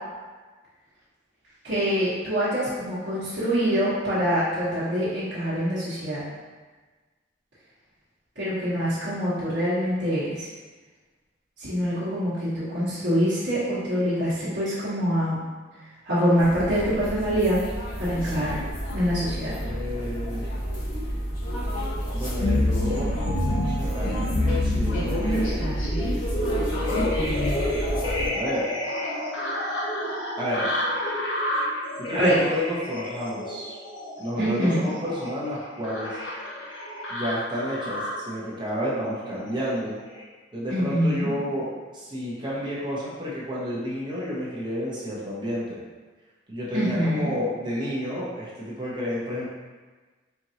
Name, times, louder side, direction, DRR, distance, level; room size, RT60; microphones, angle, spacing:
voice 1, 1.6-6.2 8.3-10.5 11.6-15.4 16.0-17.6 18.0-18.5 18.9-19.6 32.1-32.4 34.4-34.9 40.7-41.3 46.7-47.3, equal, 65° right, -15 dB, 1.3 m, -25 dB
sound 1, 16.4-28.3, equal, 90° left, 1.3 m, -29 dB
voice 2, 19.6-20.5 22.1-23.3 23.7-25.8 28.3-28.7 30.4-30.8 32.0-33.8 34.2-36.2 37.1-39.9 40.5-45.8 46.5-49.5, equal, 25° right, -7 dB, 1.0 m, -30 dB
sound 2, 22.4-38.3 39.0-39.6 40.1-40.2, left 1 dB, 65° left, 0.7 m, -30 dB
4.5 x 2.6 x 2.8 m, 1.3 s
head